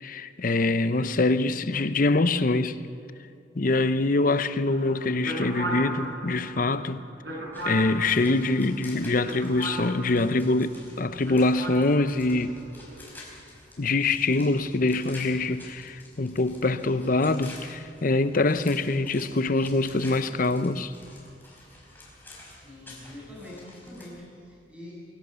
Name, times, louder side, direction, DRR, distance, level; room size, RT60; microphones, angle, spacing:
voice 1, 0.0-2.8 3.6-7.0 7.6-12.6 13.8-20.9, left 2 dB, 50° left, 0.8 m, -24 dB
sound 1, 4.7-10.8 11.2-13.0, right 1 dB, 75° right, 5.7 m, -37 dB
sound 2, 7.5-24.1, left 2 dB, 10° left, 4.8 m, -49 dB
voice 2, 22.5-25.0, left 1 dB, 5° right, 7.3 m, -44 dB
23.0 x 16.5 x 6.9 m
head